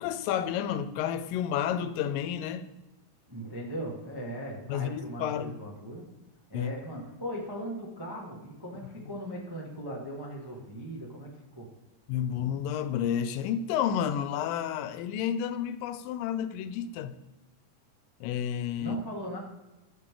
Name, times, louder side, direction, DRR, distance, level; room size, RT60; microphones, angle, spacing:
voice 1, 0.0-2.7 4.7-5.6 6.5-6.7 12.1-17.2 18.2-19.0, left 9 dB, 85° left, 2.3 m, -31 dB
voice 2, 3.3-6.1 6.5-11.7 18.8-19.4, equal, 15° right, 0.7 m, -39 dB
15.0 x 7.5 x 3.9 m
omnidirectional pair, 3.9 m